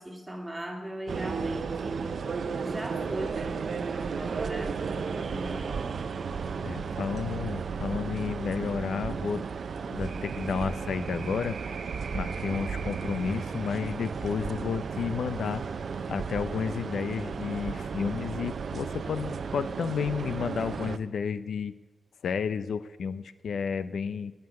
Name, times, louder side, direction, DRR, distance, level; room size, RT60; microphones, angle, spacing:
voice 1, 0.0-2.0 2.6-5.8, right 1 dB, 10° right, 1 dB, 2.0 m, -39 dB
sound 1, 1.1-21.0, right 5 dB, 55° right, 0.6 m, -34 dB
voice 2, 6.6-9.4 9.9-11.6 12.1-15.6 16.1-21.7 22.2-24.3, left 6 dB, 80° left, 14 dB, 0.5 m, -31 dB
18.5 x 6.7 x 9.6 m, 1.2 s
wide cardioid pair, 175°, 0 cm